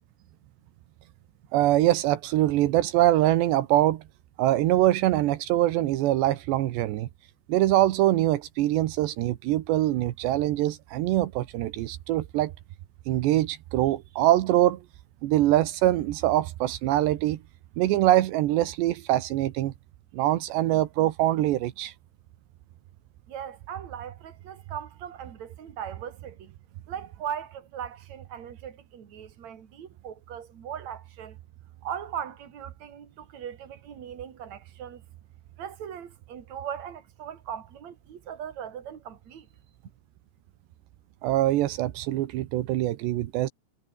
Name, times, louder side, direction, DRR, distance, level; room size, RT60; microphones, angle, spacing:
voice 1, 1.5-4.0 4.4-7.1 7.5-12.5 13.1-14.8 15.2-17.4 17.8-19.7 20.1-21.9 41.2-43.5, right 14 dB, 85° right, 3.4 m, -23 dB
voice 2, 23.3-26.5 26.9-31.4 31.8-35.0 35.6-39.5, right 9 dB, 45° right, 3.8 m, -39 dB
omnidirectional pair, 5.0 m